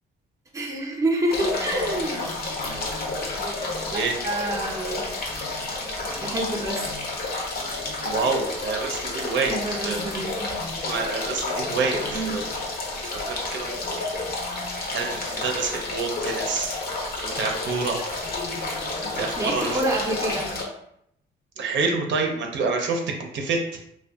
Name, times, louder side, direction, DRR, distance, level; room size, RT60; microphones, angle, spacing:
voice 1, 0.5-2.2 3.9-5.1 6.2-6.9 9.4-10.6 12.1-12.4 19.4-20.6, right 1 dB, 15° right, 0 dB, 0.5 m, -28 dB
sound 1, 1.3-20.6, left 2 dB, 50° left, 0.7 m, -30 dB
voice 2, 8.0-10.0 10.8-12.4 13.0-13.8 14.9-16.7 17.2-18.0 19.0-19.8 21.6-23.8, right 4 dB, 65° right, 2 dB, 0.5 m, -27 dB
2.7 x 2.2 x 2.2 m, 0.75 s
cardioid pair, 90°, 20 cm